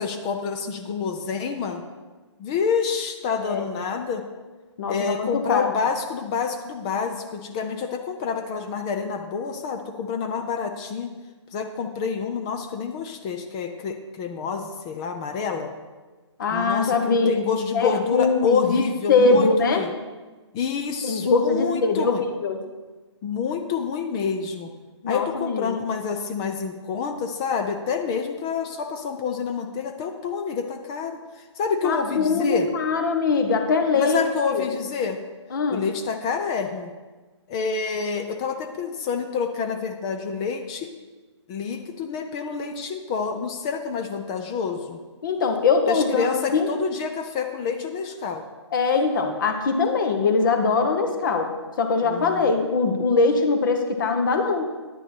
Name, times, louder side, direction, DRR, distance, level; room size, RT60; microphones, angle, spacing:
voice 1, 0.0-1.8 2.4-4.3 4.9-11.1 11.5-15.7 16.5-19.9 20.5-22.2 23.2-24.7 25.1-32.7 34.0-35.2 35.7-36.9 37.5-40.9 41.5-45.0 45.9-48.4 52.0-52.5, left 6 dB, 15° left, 6 dB, 0.3 m, -28 dB
voice 2, 4.8-5.7 16.4-17.4 17.7-18.8 19.1-19.8 21.0-22.6 25.0-25.8 31.8-34.6 35.5-35.8 45.2-46.7 48.7-51.5 51.8-54.7, left 4 dB, 45° left, 6 dB, 1.3 m, -22 dB
9.9 x 8.8 x 4.3 m, 1.3 s
hypercardioid pair, 150°, 15 cm